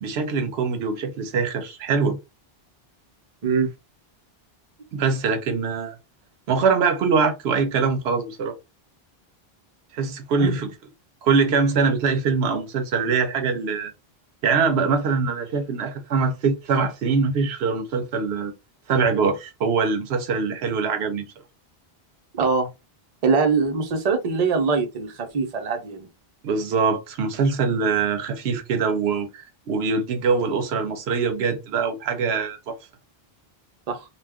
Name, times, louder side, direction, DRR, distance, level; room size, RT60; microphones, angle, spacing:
voice 1, 0.0-2.2 4.9-5.9 6.5-8.6 9.9-10.7 11.2-13.9 14.4-18.5 18.9-21.3 26.4-32.8, right 5 dB, 80° right, 0.8 m, -23 dB
voice 2, 22.3-22.7 23.2-26.1 33.9-34.0, right 5 dB, 45° right, 0.7 m, -22 dB
2.3 x 2.2 x 3.4 m
omnidirectional pair, 1.1 m